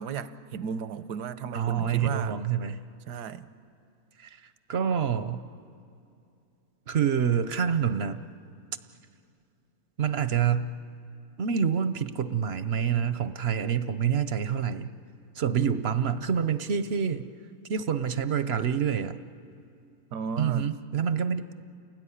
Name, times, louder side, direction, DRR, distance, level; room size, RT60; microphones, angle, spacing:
voice 1, 0.0-2.3 3.1-3.5 20.1-20.7, right 6 dB, 85° right, 12 dB, 1.4 m, -35 dB
voice 2, 1.5-2.8 4.2-5.4 6.9-8.2 10.0-10.7 11.4-14.9 15.3-17.3 17.7-19.2 20.4-21.6, right 7 dB, 50° right, 12 dB, 0.8 m, -27 dB
29.0 x 18.5 x 9.9 m, 2.6 s
omnidirectional pair, 1.7 m